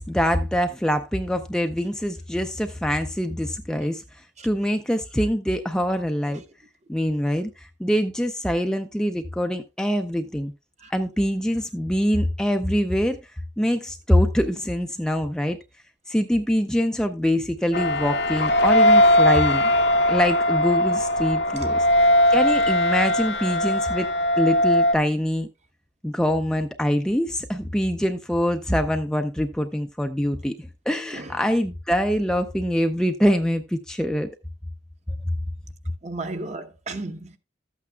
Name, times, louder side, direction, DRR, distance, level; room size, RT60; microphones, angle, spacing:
voice 1, 0.0-6.4 6.9-10.5 10.9-13.2 13.6-15.6 16.1-19.7 20.1-24.1 24.4-25.5 26.0-34.3, equal, 5° left, 0.4 m, -24 dB
sound 1, 17.7-24.9, left 1 dB, 60° left, 0.8 m, -19 dB
voice 2, 36.0-37.4, right 2 dB, 35° right, 1.0 m, -34 dB
13.0 x 8.4 x 2.2 m
head